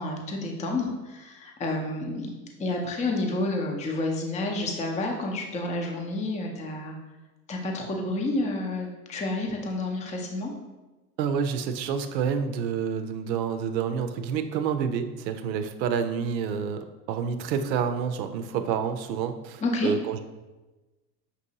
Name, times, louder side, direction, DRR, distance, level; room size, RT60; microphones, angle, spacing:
voice 1, 0.0-7.0 7.5-10.5 19.6-19.9, left 2 dB, 15° left, 1 dB, 0.5 m, -30 dB
voice 2, 11.2-20.2, right 7 dB, 85° right, 8 dB, 0.6 m, -28 dB
6.0 x 2.7 x 2.8 m, 1.1 s
hypercardioid pair, 100°, 50 cm